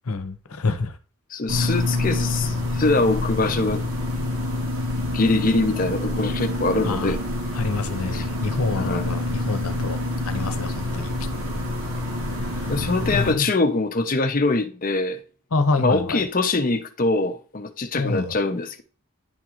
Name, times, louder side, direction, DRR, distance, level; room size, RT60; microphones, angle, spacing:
voice 1, 0.1-1.0 6.8-7.2 7.5-10.0 10.2-11.1 12.4-12.7 13.1-13.5 15.5-16.2 17.9-18.3, left 3 dB, 80° left, 0.8 m, -27 dB
voice 2, 1.3-3.8 5.1-7.2 8.1-8.2 8.8-9.1 12.7-15.2 15.8-18.8, left 3 dB, 40° left, 0.7 m, -23 dB
sound 1, 1.5-13.3, left 2 dB, 80° right, 2.1 m, -27 dB
10.5 x 3.7 x 3.0 m
head